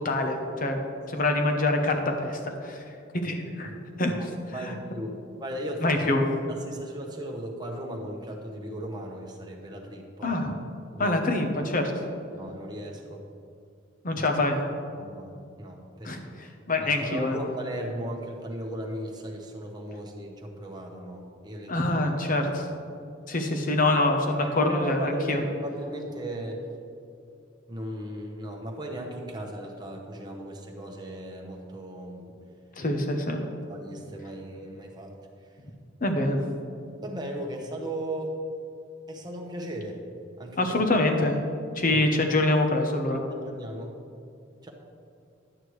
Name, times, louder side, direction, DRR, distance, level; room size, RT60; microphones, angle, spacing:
voice 1, 0.0-0.8 1.1-2.8 3.1-3.7 4.0-4.3 4.6-4.7 5.8-6.2 10.2-10.5 11.0-11.9 14.0-14.6 16.0-17.5 21.7-22.7 23.3-25.4 32.8-33.4 36.0-36.4 40.6-41.4 41.7-43.2, left 2 dB, 45° left, 4 dB, 0.9 m, -25 dB
voice 2, 4.1-5.1 5.4-6.2 6.5-10.3 10.9-11.2 12.3-13.2 14.1-14.2 14.9-16.1 16.8-21.8 24.4-26.6 27.7-32.4 33.7-35.1 37.0-38.4 39.1-40.0 40.4-40.7 41.9-42.0 43.4-44.0 44.6-44.7, right 1 dB, 20° right, 0 dB, 1.0 m, -36 dB
11.0 x 8.7 x 3.2 m, 2.4 s
head